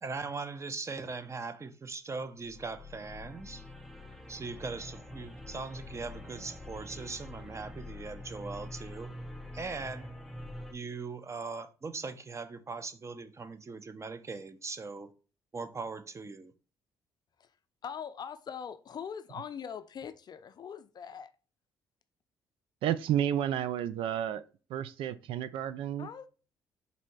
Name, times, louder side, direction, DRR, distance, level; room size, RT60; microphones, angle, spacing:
voice 1, 0.0-3.6 4.3-9.1 9.5-10.1 10.7-15.1 15.5-16.5, right 4 dB, 30° right, 0.7 m, -40 dB
sound 1, 2.4-10.7, left 2 dB, ahead, 0.8 m, -46 dB
voice 2, 17.8-21.3 26.0-26.3, left 7 dB, 45° left, 0.5 m, -42 dB
voice 3, 22.8-24.4 24.7-26.1, right 10 dB, 70° right, 0.4 m, -31 dB
4.1 x 2.7 x 4.5 m
hypercardioid pair, 55°, 10 cm